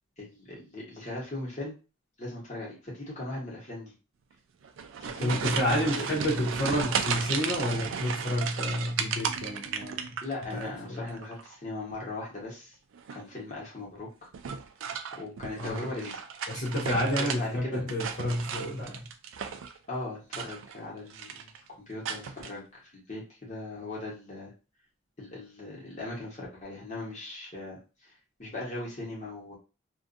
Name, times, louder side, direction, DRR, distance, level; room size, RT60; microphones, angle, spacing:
voice 1, 0.2-1.7 2.2-3.9 5.0-5.3 5.6-6.1 10.2-12.7 13.1-14.3 15.2-16.2 17.4-17.8 19.9-21.5 21.9-22.6 22.9-24.5 25.2-28.1 28.4-29.5, left 2 dB, 35° left, 1.1 m, -39 dB
sound 1, 4.6-10.7 11.0-11.5 12.9-13.3 14.3-17.4 17.7-19.8 20.2-20.8 21.1-21.6 22.0-22.5, right 6 dB, 65° right, 0.3 m, -34 dB
voice 2, 5.2-10.2 10.5-11.2 15.6-15.9 16.5-19.1, equal, 50° left, 0.6 m, -30 dB
2.5 x 2.4 x 2.5 m
head